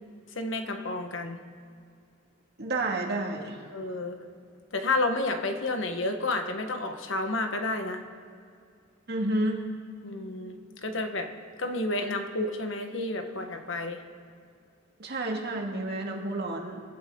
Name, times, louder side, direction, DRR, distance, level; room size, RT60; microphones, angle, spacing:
voice 1, 0.3-1.4 3.7-4.2 4.7-8.0 10.0-11.3 11.6-14.0, left 2 dB, 65° left, 5 dB, 1.3 m, -30 dB
voice 2, 2.6-3.6 9.1-9.6 15.0-16.8, right 2 dB, 55° right, 1 dB, 2.1 m, -30 dB
26.5 x 11.5 x 3.8 m, 2.4 s
head